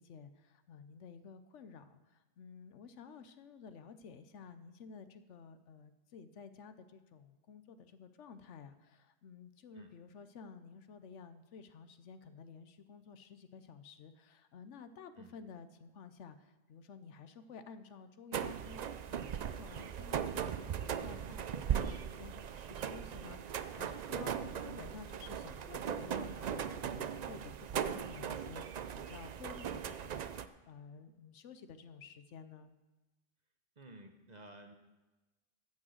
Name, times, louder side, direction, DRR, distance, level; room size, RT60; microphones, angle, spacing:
voice 1, 0.0-32.7, left 6 dB, 70° left, 10 dB, 1.0 m, -53 dB
sound 1, 18.3-30.5, right 8 dB, 85° right, 0.3 m, -39 dB
voice 2, 33.8-34.7, right 1 dB, 40° right, 4 dB, 1.0 m, -53 dB
11.5 x 6.2 x 7.9 m, 1.1 s
omnidirectional pair, 1.3 m